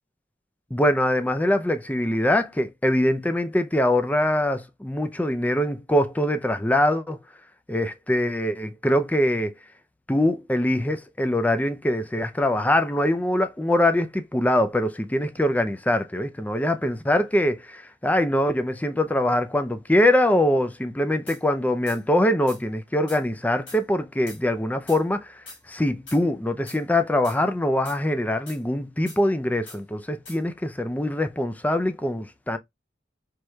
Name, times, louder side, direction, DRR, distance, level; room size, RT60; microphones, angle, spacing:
voice 1, 0.7-7.2 7.7-9.5 10.1-32.6, left 1 dB, 10° left, 0.4 m, -23 dB
sound 1, 21.3-21.4 21.9-22.0 22.5-22.6 23.1-23.2 23.7-23.8 24.3-24.4 24.9-25.0 25.5-25.6 26.1-26.2 26.7-26.8 27.2-27.4 27.8-28.0 28.5-28.6 29.1-29.2 29.7-29.8 30.2-30.4, left 2 dB, 70° left, 3.0 m, -43 dB
4.6 x 3.1 x 2.2 m
head